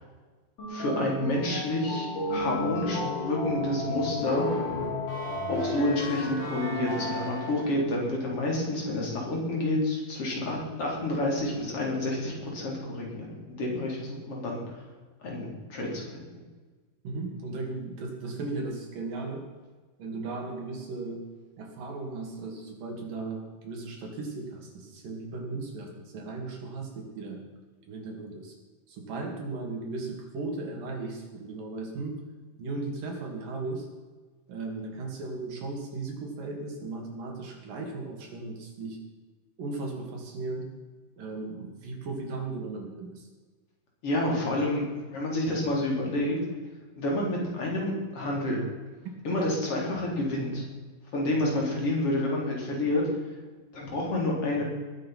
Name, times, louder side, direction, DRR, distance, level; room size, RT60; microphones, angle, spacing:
sound 1, 0.6-7.9, left 2 dB, 65° left, 6.1 m, -32 dB
voice 1, 0.7-4.6 5.5-14.6 15.2-16.3 44.0-46.4 47.0-48.6 49.2-50.6 51.1-53.1 53.7-54.6, left 1 dB, 40° left, -2 dB, 4.7 m, -29 dB
voice 2, 17.0-19.4 20.0-21.2 21.6-27.4 27.9-28.5 28.9-32.2 32.6-33.9 34.5-39.0 39.6-40.7 41.2-43.3 49.1-49.2, right 3 dB, 75° right, 1 dB, 4.4 m, -36 dB
21.0 x 9.0 x 6.0 m, 1.4 s
omnidirectional pair, 3.9 m